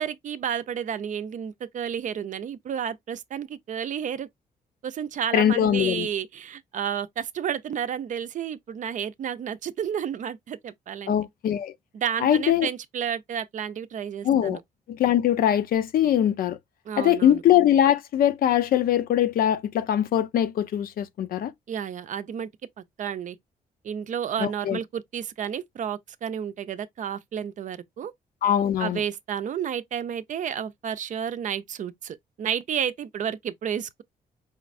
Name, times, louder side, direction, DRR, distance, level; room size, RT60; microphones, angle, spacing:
voice 1, 0.0-4.3 4.8-11.1 11.9-14.6 16.9-17.4 21.7-22.5 23.0-23.4 23.8-28.1 28.8-34.0, right 8 dB, 55° right, 0.5 m, -31 dB
voice 2, 5.3-6.1 11.1-11.7 12.2-12.7 14.2-14.6 14.9-16.6 17.0-21.5 24.4-24.8 28.4-29.0, left 10 dB, 75° left, 0.6 m, -22 dB
5.0 x 3.1 x 2.5 m
cardioid pair, 130°, 15 cm